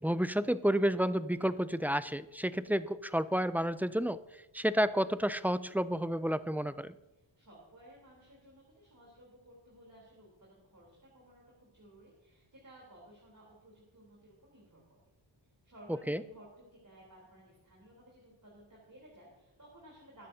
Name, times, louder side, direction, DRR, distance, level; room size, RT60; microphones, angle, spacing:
voice 1, 0.0-4.2 4.5-6.9 16.1-16.2, equal, 5° right, 13 dB, 0.3 m, -30 dB
voice 2, 7.4-15.0 15.6-16.5 16.7-20.3, right 1 dB, 40° right, -4 dB, 3.6 m, -57 dB
21.0 x 9.9 x 2.8 m, 0.97 s
wide cardioid pair, 90°, 48 cm